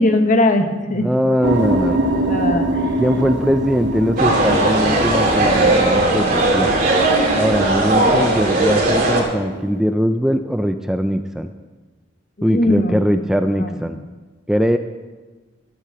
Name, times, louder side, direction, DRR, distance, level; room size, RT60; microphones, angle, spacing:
voice 1, 0.0-1.1 2.3-3.0 12.4-12.9 13.2-13.9, left 1 dB, 45° left, 6 dB, 1.2 m, -20 dB
voice 2, 1.0-2.0 3.0-6.7 7.4-11.5 12.4-14.0 14.5-14.8, equal, 5° right, 7 dB, 0.4 m, -20 dB
sound 1, 1.4-9.8, right 1 dB, 65° right, 1.1 m, -25 dB
sound 2, 4.2-9.2, right 2 dB, 50° right, 2.7 m, -17 dB
13.0 x 8.5 x 6.8 m, 1.3 s
head